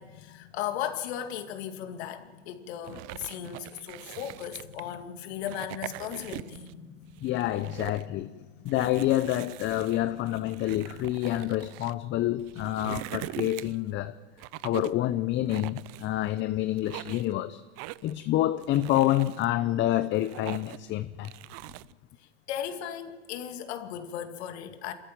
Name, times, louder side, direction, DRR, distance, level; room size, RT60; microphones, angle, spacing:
voice 1, 0.0-7.8 22.2-24.9, left 10 dB, 60° left, 2.4 m, -37 dB
sound 1, 2.8-4.9 5.4-6.7 7.1-8.1 8.7-11.9 12.4-13.9 14.4-15.0 15.5-16.4 16.8-17.3 17.8-18.2 18.6-19.5 19.9-20.9 21.2-21.9, right 20 dB, 40° right, 0.6 m, -42 dB
voice 2, 7.2-8.3 8.6-14.2 14.6-17.6 18.0-21.3, left 14 dB, 30° left, 0.7 m, -28 dB
26.5 x 14.0 x 9.3 m
hypercardioid pair, 110°, 36 cm